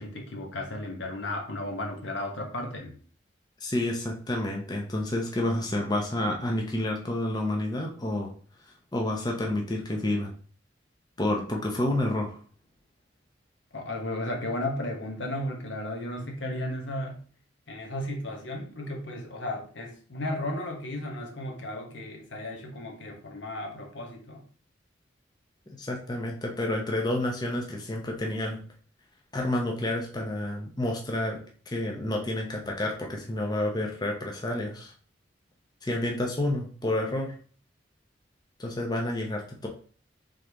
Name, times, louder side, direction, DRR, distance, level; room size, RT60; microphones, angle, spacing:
voice 1, 0.0-2.9 13.7-17.2 17.7-24.4, left 1 dB, 80° left, 2 dB, 1.0 m, -34 dB
voice 2, 3.6-8.3 8.9-10.3 11.2-12.4 25.8-28.6 29.3-31.4 31.7-34.9 35.8-37.3 38.6-39.7, left 1 dB, 20° left, 0 dB, 0.6 m, -29 dB
3.7 x 3.3 x 3.4 m, 0.43 s
head